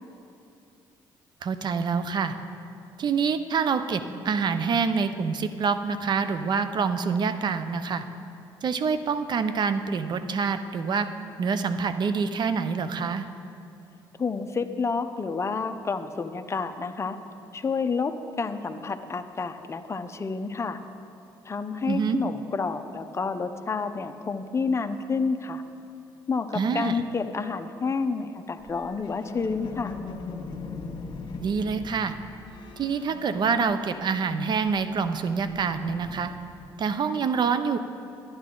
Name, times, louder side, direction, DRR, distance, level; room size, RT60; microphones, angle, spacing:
voice 1, 1.4-2.3 3.0-8.0 8.6-11.1 11.4-13.2 21.9-22.2 26.5-26.9 31.4-32.1 32.8-36.3 36.8-37.8, right 5 dB, 50° right, 10 dB, 0.6 m, -26 dB
voice 2, 14.2-17.2 17.5-20.8 21.4-25.6 26.3-29.9, left 4 dB, 30° left, 8 dB, 0.6 m, -29 dB
sound 1, 28.6-34.2 34.5-36.8, left 4 dB, 50° left, 1.5 m, -41 dB
11.0 x 10.5 x 3.8 m, 2.6 s
supercardioid pair, 70°, 10 cm